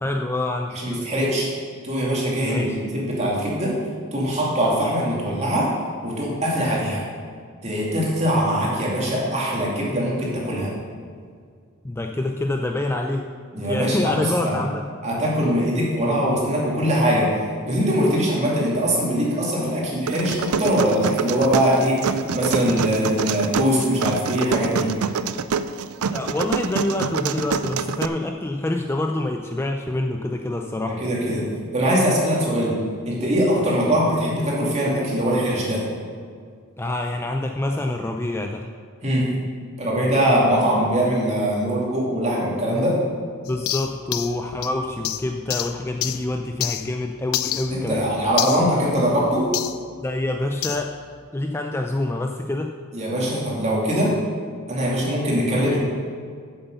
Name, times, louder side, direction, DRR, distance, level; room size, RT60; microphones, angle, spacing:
voice 1, 0.0-0.7 2.4-2.8 11.8-13.2 13.6-14.8 26.1-31.0 33.6-33.7 36.8-38.6 40.3-40.4 43.5-48.1 50.0-51.0 51.3-52.7, left 2 dB, 10° left, 3 dB, 0.4 m, -26 dB
voice 2, 0.7-1.5 1.8-3.7 4.1-5.7 6.0-7.0 7.6-10.7 13.5-14.6 15.0-17.3 17.7-24.9 31.0-31.5 31.7-32.8 33.1-35.8 39.0-39.2 39.8-43.0 47.7-49.5 52.9-54.1 54.7-55.8, equal, 30° right, -5 dB, 2.6 m, -22 dB
sound 1, 20.1-28.1, right 6 dB, 75° right, 0.4 m, -26 dB
sound 2, 43.5-47.0 47.3-49.8 50.6-50.9, left 12 dB, 75° left, 0.5 m, -30 dB
7.9 x 7.9 x 6.9 m, 2.1 s
head